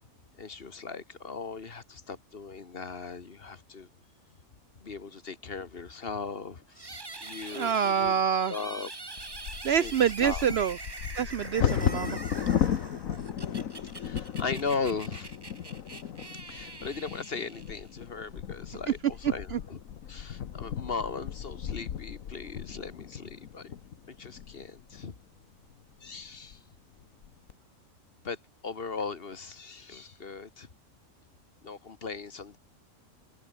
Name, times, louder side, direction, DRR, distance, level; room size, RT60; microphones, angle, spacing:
voice 1, 0.4-3.9 4.8-8.1 8.5-8.9 9.8-9.9 10.2-10.4 14.0-15.3 16.5-19.8 20.1-23.7 24.1-25.1 26.0-26.6 28.2-28.4 28.6-30.7 31.6-32.6, left 4 dB, 45° left, 1.6 m, -38 dB
sound 1, 6.7-18.1, right 2 dB, 20° right, 1.3 m, -44 dB
voice 2, 7.5-8.5 9.6-10.8 11.2-12.2 13.5-13.6 19.2-19.6, right 8 dB, 60° right, 0.7 m, -26 dB
Bird vocalization bird call bird song / Wind / Thunder, 9.2-25.1 25.7-25.8 26.1-26.5 27.0-27.5, left 9 dB, 80° left, 1.5 m, -35 dB
omnidirectional pair, 1.4 m